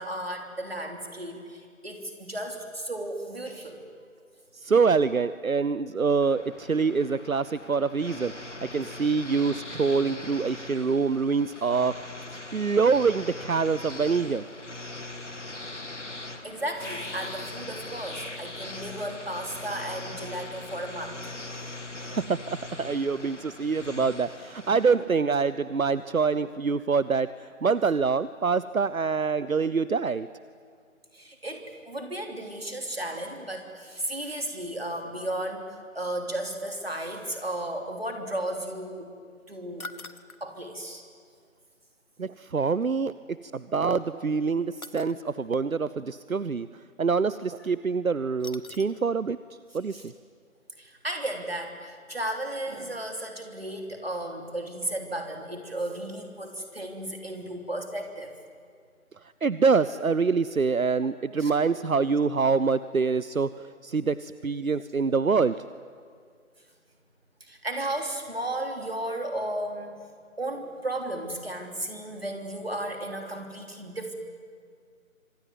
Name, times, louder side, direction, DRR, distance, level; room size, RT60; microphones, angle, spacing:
voice 1, 0.0-4.1 16.4-21.4 31.1-39.1 39.5-39.9 40.4-41.0 49.9-50.0 50.8-58.3 61.4-61.5 67.4-69.9 70.4-74.1, right 1 dB, 45° right, 3 dB, 3.3 m, -34 dB
voice 2, 4.5-12.1 12.5-14.5 22.0-30.3 42.2-49.4 49.7-50.1 59.2-65.6, right 5 dB, 75° right, 16 dB, 0.8 m, -25 dB
sound 1, 6.2-25.0, left 2 dB, 55° left, 2.1 m, -41 dB
sound 2, 39.8-40.4 42.8-42.9 44.8-45.2 48.4-49.1 49.5-49.6 50.0-50.1, left 2 dB, 85° left, 1.6 m, -43 dB
26.0 x 22.0 x 9.4 m, 2.1 s
figure-of-eight pair, 175°, 41 cm